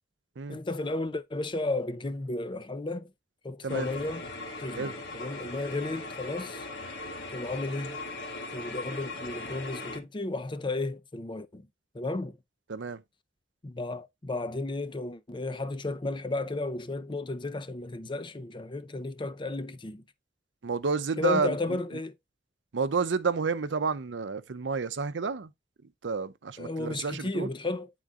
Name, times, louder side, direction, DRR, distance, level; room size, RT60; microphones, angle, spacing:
voice 1, 0.5-3.1 3.4-4.3 4.6-6.7 7.3-8.0 8.5-11.7 11.9-12.4 13.6-20.0 21.2-22.1 26.6-27.9, left 2 dB, 25° left, 0.6 m, -33 dB
sound 1, 3.7-10.0, left 2 dB, 70° left, 1.5 m, -39 dB
voice 2, 12.7-13.0 20.6-21.6 22.7-25.5 26.0-27.5, right 4 dB, 80° right, 0.6 m, -30 dB
9.5 x 3.8 x 3.6 m
head